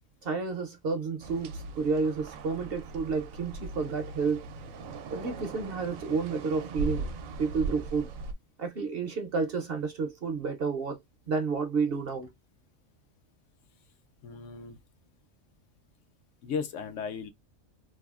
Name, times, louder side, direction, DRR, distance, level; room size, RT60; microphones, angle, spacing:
voice 1, 0.2-4.5 5.1-7.1 7.4-8.1 8.6-11.0 11.3-12.3, right 4 dB, 60° right, 0.7 m, -30 dB
sound 1, 1.2-8.3, right 3 dB, 80° right, 1.0 m, -39 dB
voice 2, 14.2-14.8 16.4-17.3, left 6 dB, 70° left, 0.9 m, -35 dB
3.3 x 2.3 x 2.3 m
omnidirectional pair, 1.4 m